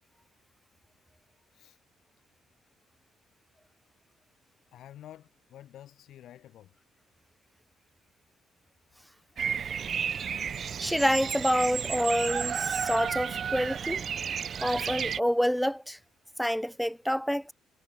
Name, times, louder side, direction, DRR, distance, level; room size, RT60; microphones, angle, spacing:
voice 1, 4.7-6.7, left 12 dB, 65° left, 2.0 m, -50 dB
Bird vocalization bird call bird song, 9.4-15.2, right 7 dB, 40° right, 0.7 m, -32 dB
voice 2, 10.8-14.0 14.6-16.0 16.4-17.5, equal, ahead, 0.4 m, -27 dB
cardioid pair, 125°, 0 cm